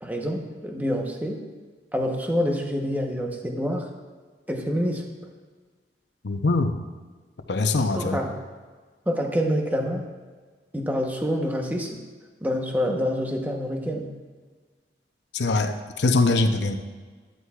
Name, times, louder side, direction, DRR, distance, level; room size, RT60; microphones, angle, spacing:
voice 1, 0.0-1.4 1.9-3.9 4.5-5.2 7.9-8.3 9.1-10.0 10.7-12.0 12.4-14.1, equal, 10° right, 2 dB, 0.9 m, -27 dB
voice 2, 6.2-6.7 7.5-8.2 15.3-16.8, left 3 dB, 80° left, 6 dB, 0.7 m, -22 dB
12.5 x 11.5 x 2.4 m, 1.4 s
head